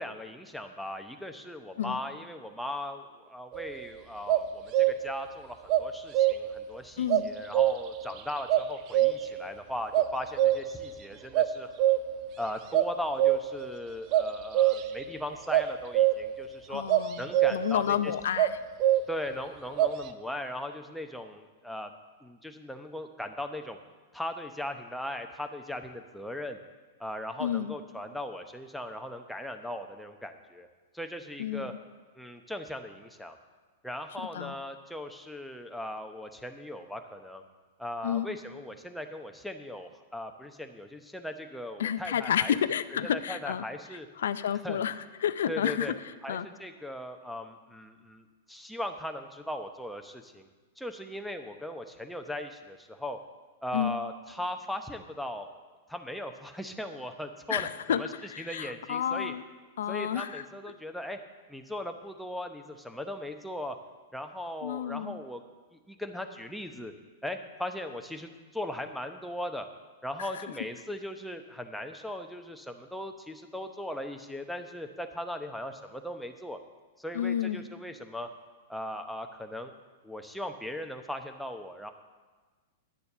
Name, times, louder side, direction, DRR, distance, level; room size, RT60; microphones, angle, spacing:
voice 1, 0.0-11.7 12.4-16.8 17.2-18.1 19.1-21.9 22.2-23.8 24.1-26.6 27.0-30.7 30.9-31.7 32.1-33.4 33.8-37.4 37.8-42.6 43.0-44.1 44.6-44.8 45.5-45.9 46.2-50.5 50.8-53.2 53.6-55.5 55.9-59.3 59.9-61.2 61.5-63.8 64.1-65.4 65.7-66.9 67.2-69.7 70.0-76.6 77.0-78.3 78.7-79.7 80.0-81.9, left 1 dB, ahead, 5 dB, 0.9 m, -38 dB
sound 1, 3.5-3.8 4.3-5.2 5.7-6.6 7.1-8.0 8.5-9.4 9.9-10.9 11.3-12.3 12.7-13.7 14.1-15.0 15.5-16.4 16.9-17.8 18.4-19.3 19.8-20.0, right 13 dB, 40° right, 0.6 m, -25 dB
voice 2, 7.0-7.3 16.7-17.2 17.5-18.6 27.4-27.7 31.4-31.8 34.2-34.5 38.0-38.3 41.8-43.6 44.2-44.9 45.2-45.9 46.3-46.5 53.7-53.9 57.5-58.0 58.3-59.4 59.8-60.4 64.6-65.2 70.2-70.4 77.1-77.6, left 9 dB, 70° left, 14 dB, 0.5 m, -30 dB
10.0 x 6.8 x 6.8 m, 1.3 s
hypercardioid pair, 105°, 0 cm